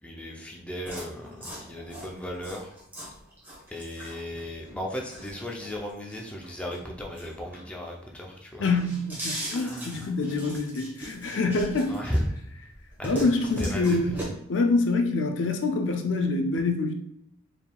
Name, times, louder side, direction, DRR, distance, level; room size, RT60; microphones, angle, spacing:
voice 1, 0.0-2.8 3.7-8.7 9.5-10.1 11.9-12.3 13.0-13.3 13.6-14.1, equal, 5° left, -1 dB, 0.5 m, -35 dB
sound 1, 0.8-8.0 8.3-12.4 12.7-14.2, right 1 dB, 10° right, 1.1 m, -39 dB
voice 2, 8.6-11.9 13.0-14.2 14.5-16.9, left 3 dB, 65° left, 5 dB, 0.5 m, -26 dB
4.5 x 3.5 x 2.3 m, 0.76 s
head